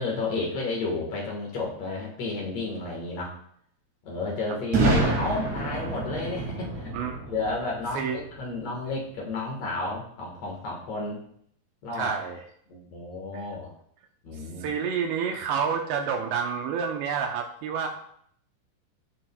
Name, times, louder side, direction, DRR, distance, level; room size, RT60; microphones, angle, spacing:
voice 1, 0.0-3.3 4.0-6.9 7.3-11.2 11.8-12.1 12.7-13.7 14.2-14.7, left 3 dB, 75° left, -1 dB, 1.5 m, -32 dB
Boom, 4.7-8.6, right 2 dB, 45° right, 2.8 m, -27 dB
voice 2, 11.9-12.4 13.3-13.4 14.6-17.9, right 6 dB, 80° right, 3 dB, 2.7 m, -29 dB
14.5 x 5.8 x 2.2 m, 0.66 s
omnidirectional pair, 5.3 m